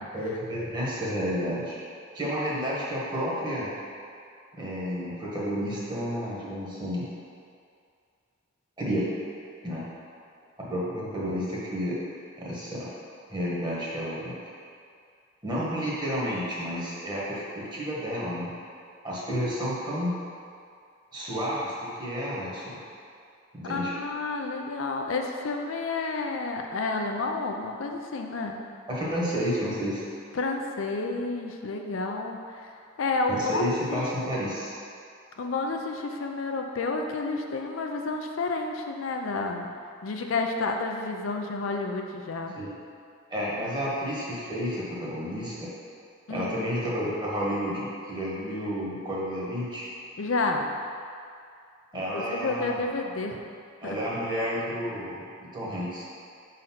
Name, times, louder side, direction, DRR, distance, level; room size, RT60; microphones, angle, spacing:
voice 1, 0.1-1.8 2.1-3.7 4.5-7.0 8.8-9.1 9.6-9.8 10.6-12.0 12.4-12.9 13.3-14.4 15.4-18.5 19.0-20.2 21.1-22.8 23.5-23.9 28.9-30.0 33.4-34.7 42.6-42.7 43.3-45.7 46.3-49.9 51.9-52.8 53.8-56.2, equal, 20° right, -6 dB, 1.3 m, -31 dB
voice 2, 23.7-28.6 30.3-32.7 33.0-34.5 35.4-39.7 40.0-42.5 46.3-46.5 50.2-50.7 51.9-53.5 53.8-54.0, left 3 dB, 75° left, 3 dB, 0.5 m, -30 dB
5.1 x 4.1 x 5.8 m, 2.3 s
head